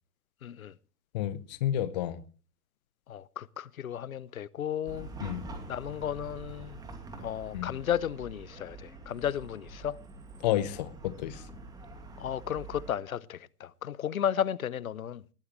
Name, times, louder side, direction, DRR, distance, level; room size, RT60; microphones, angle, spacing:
voice 1, 0.4-0.7 3.1-5.1 5.7-6.8 7.2-10.0 12.2-15.2, left 9 dB, 60° left, 0.8 m, -34 dB
voice 2, 1.1-2.2 5.2-5.4 7.5-7.7 10.4-11.4, left 12 dB, 30° left, 0.9 m, -30 dB
Chatter / Car passing by / Traffic noise roadway noise, 4.8-12.9, right 3 dB, 10° right, 2.2 m, -46 dB
19.5 x 14.0 x 3.2 m
figure-of-eight pair, 120°, 47 cm